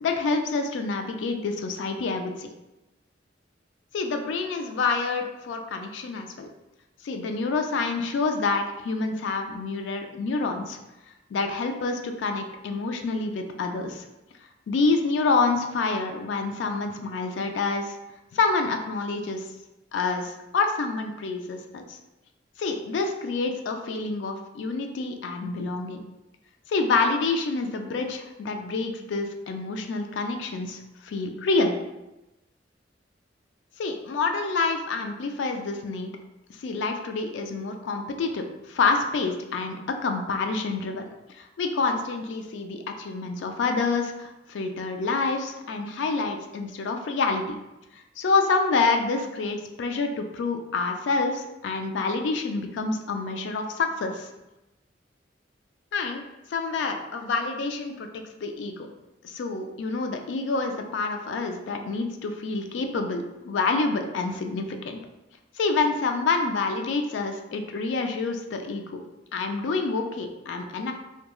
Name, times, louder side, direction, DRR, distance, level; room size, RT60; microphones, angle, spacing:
voice 1, 0.0-2.5 3.9-6.5 7.0-10.8 11.3-14.0 14.7-18.0 18.3-19.4 19.9-22.0 22.6-26.0 26.7-31.7 33.8-36.1 36.6-41.0 41.3-47.6 48.2-54.3 55.9-56.2 56.5-58.9 59.2-65.0 65.6-69.0 69.3-70.9, left 3 dB, 85° left, 5 dB, 0.3 m, -27 dB
2.9 x 2.2 x 2.2 m, 0.98 s
head